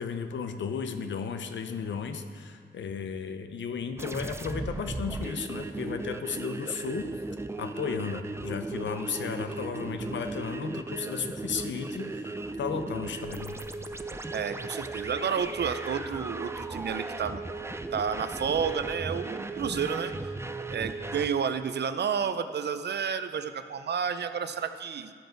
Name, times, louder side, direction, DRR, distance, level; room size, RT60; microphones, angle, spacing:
voice 1, 0.0-7.1 7.6-13.6, left 6 dB, 85° left, 8 dB, 0.6 m, -34 dB
sound 1, 4.0-21.3, right 2 dB, 15° right, 0.4 m, -36 dB
voice 2, 14.3-17.4 17.9-20.3 20.7-25.1, right 7 dB, 65° right, 10 dB, 0.5 m, -31 dB
13.0 x 5.4 x 4.4 m, 2.1 s
cardioid pair, 75°, 19 cm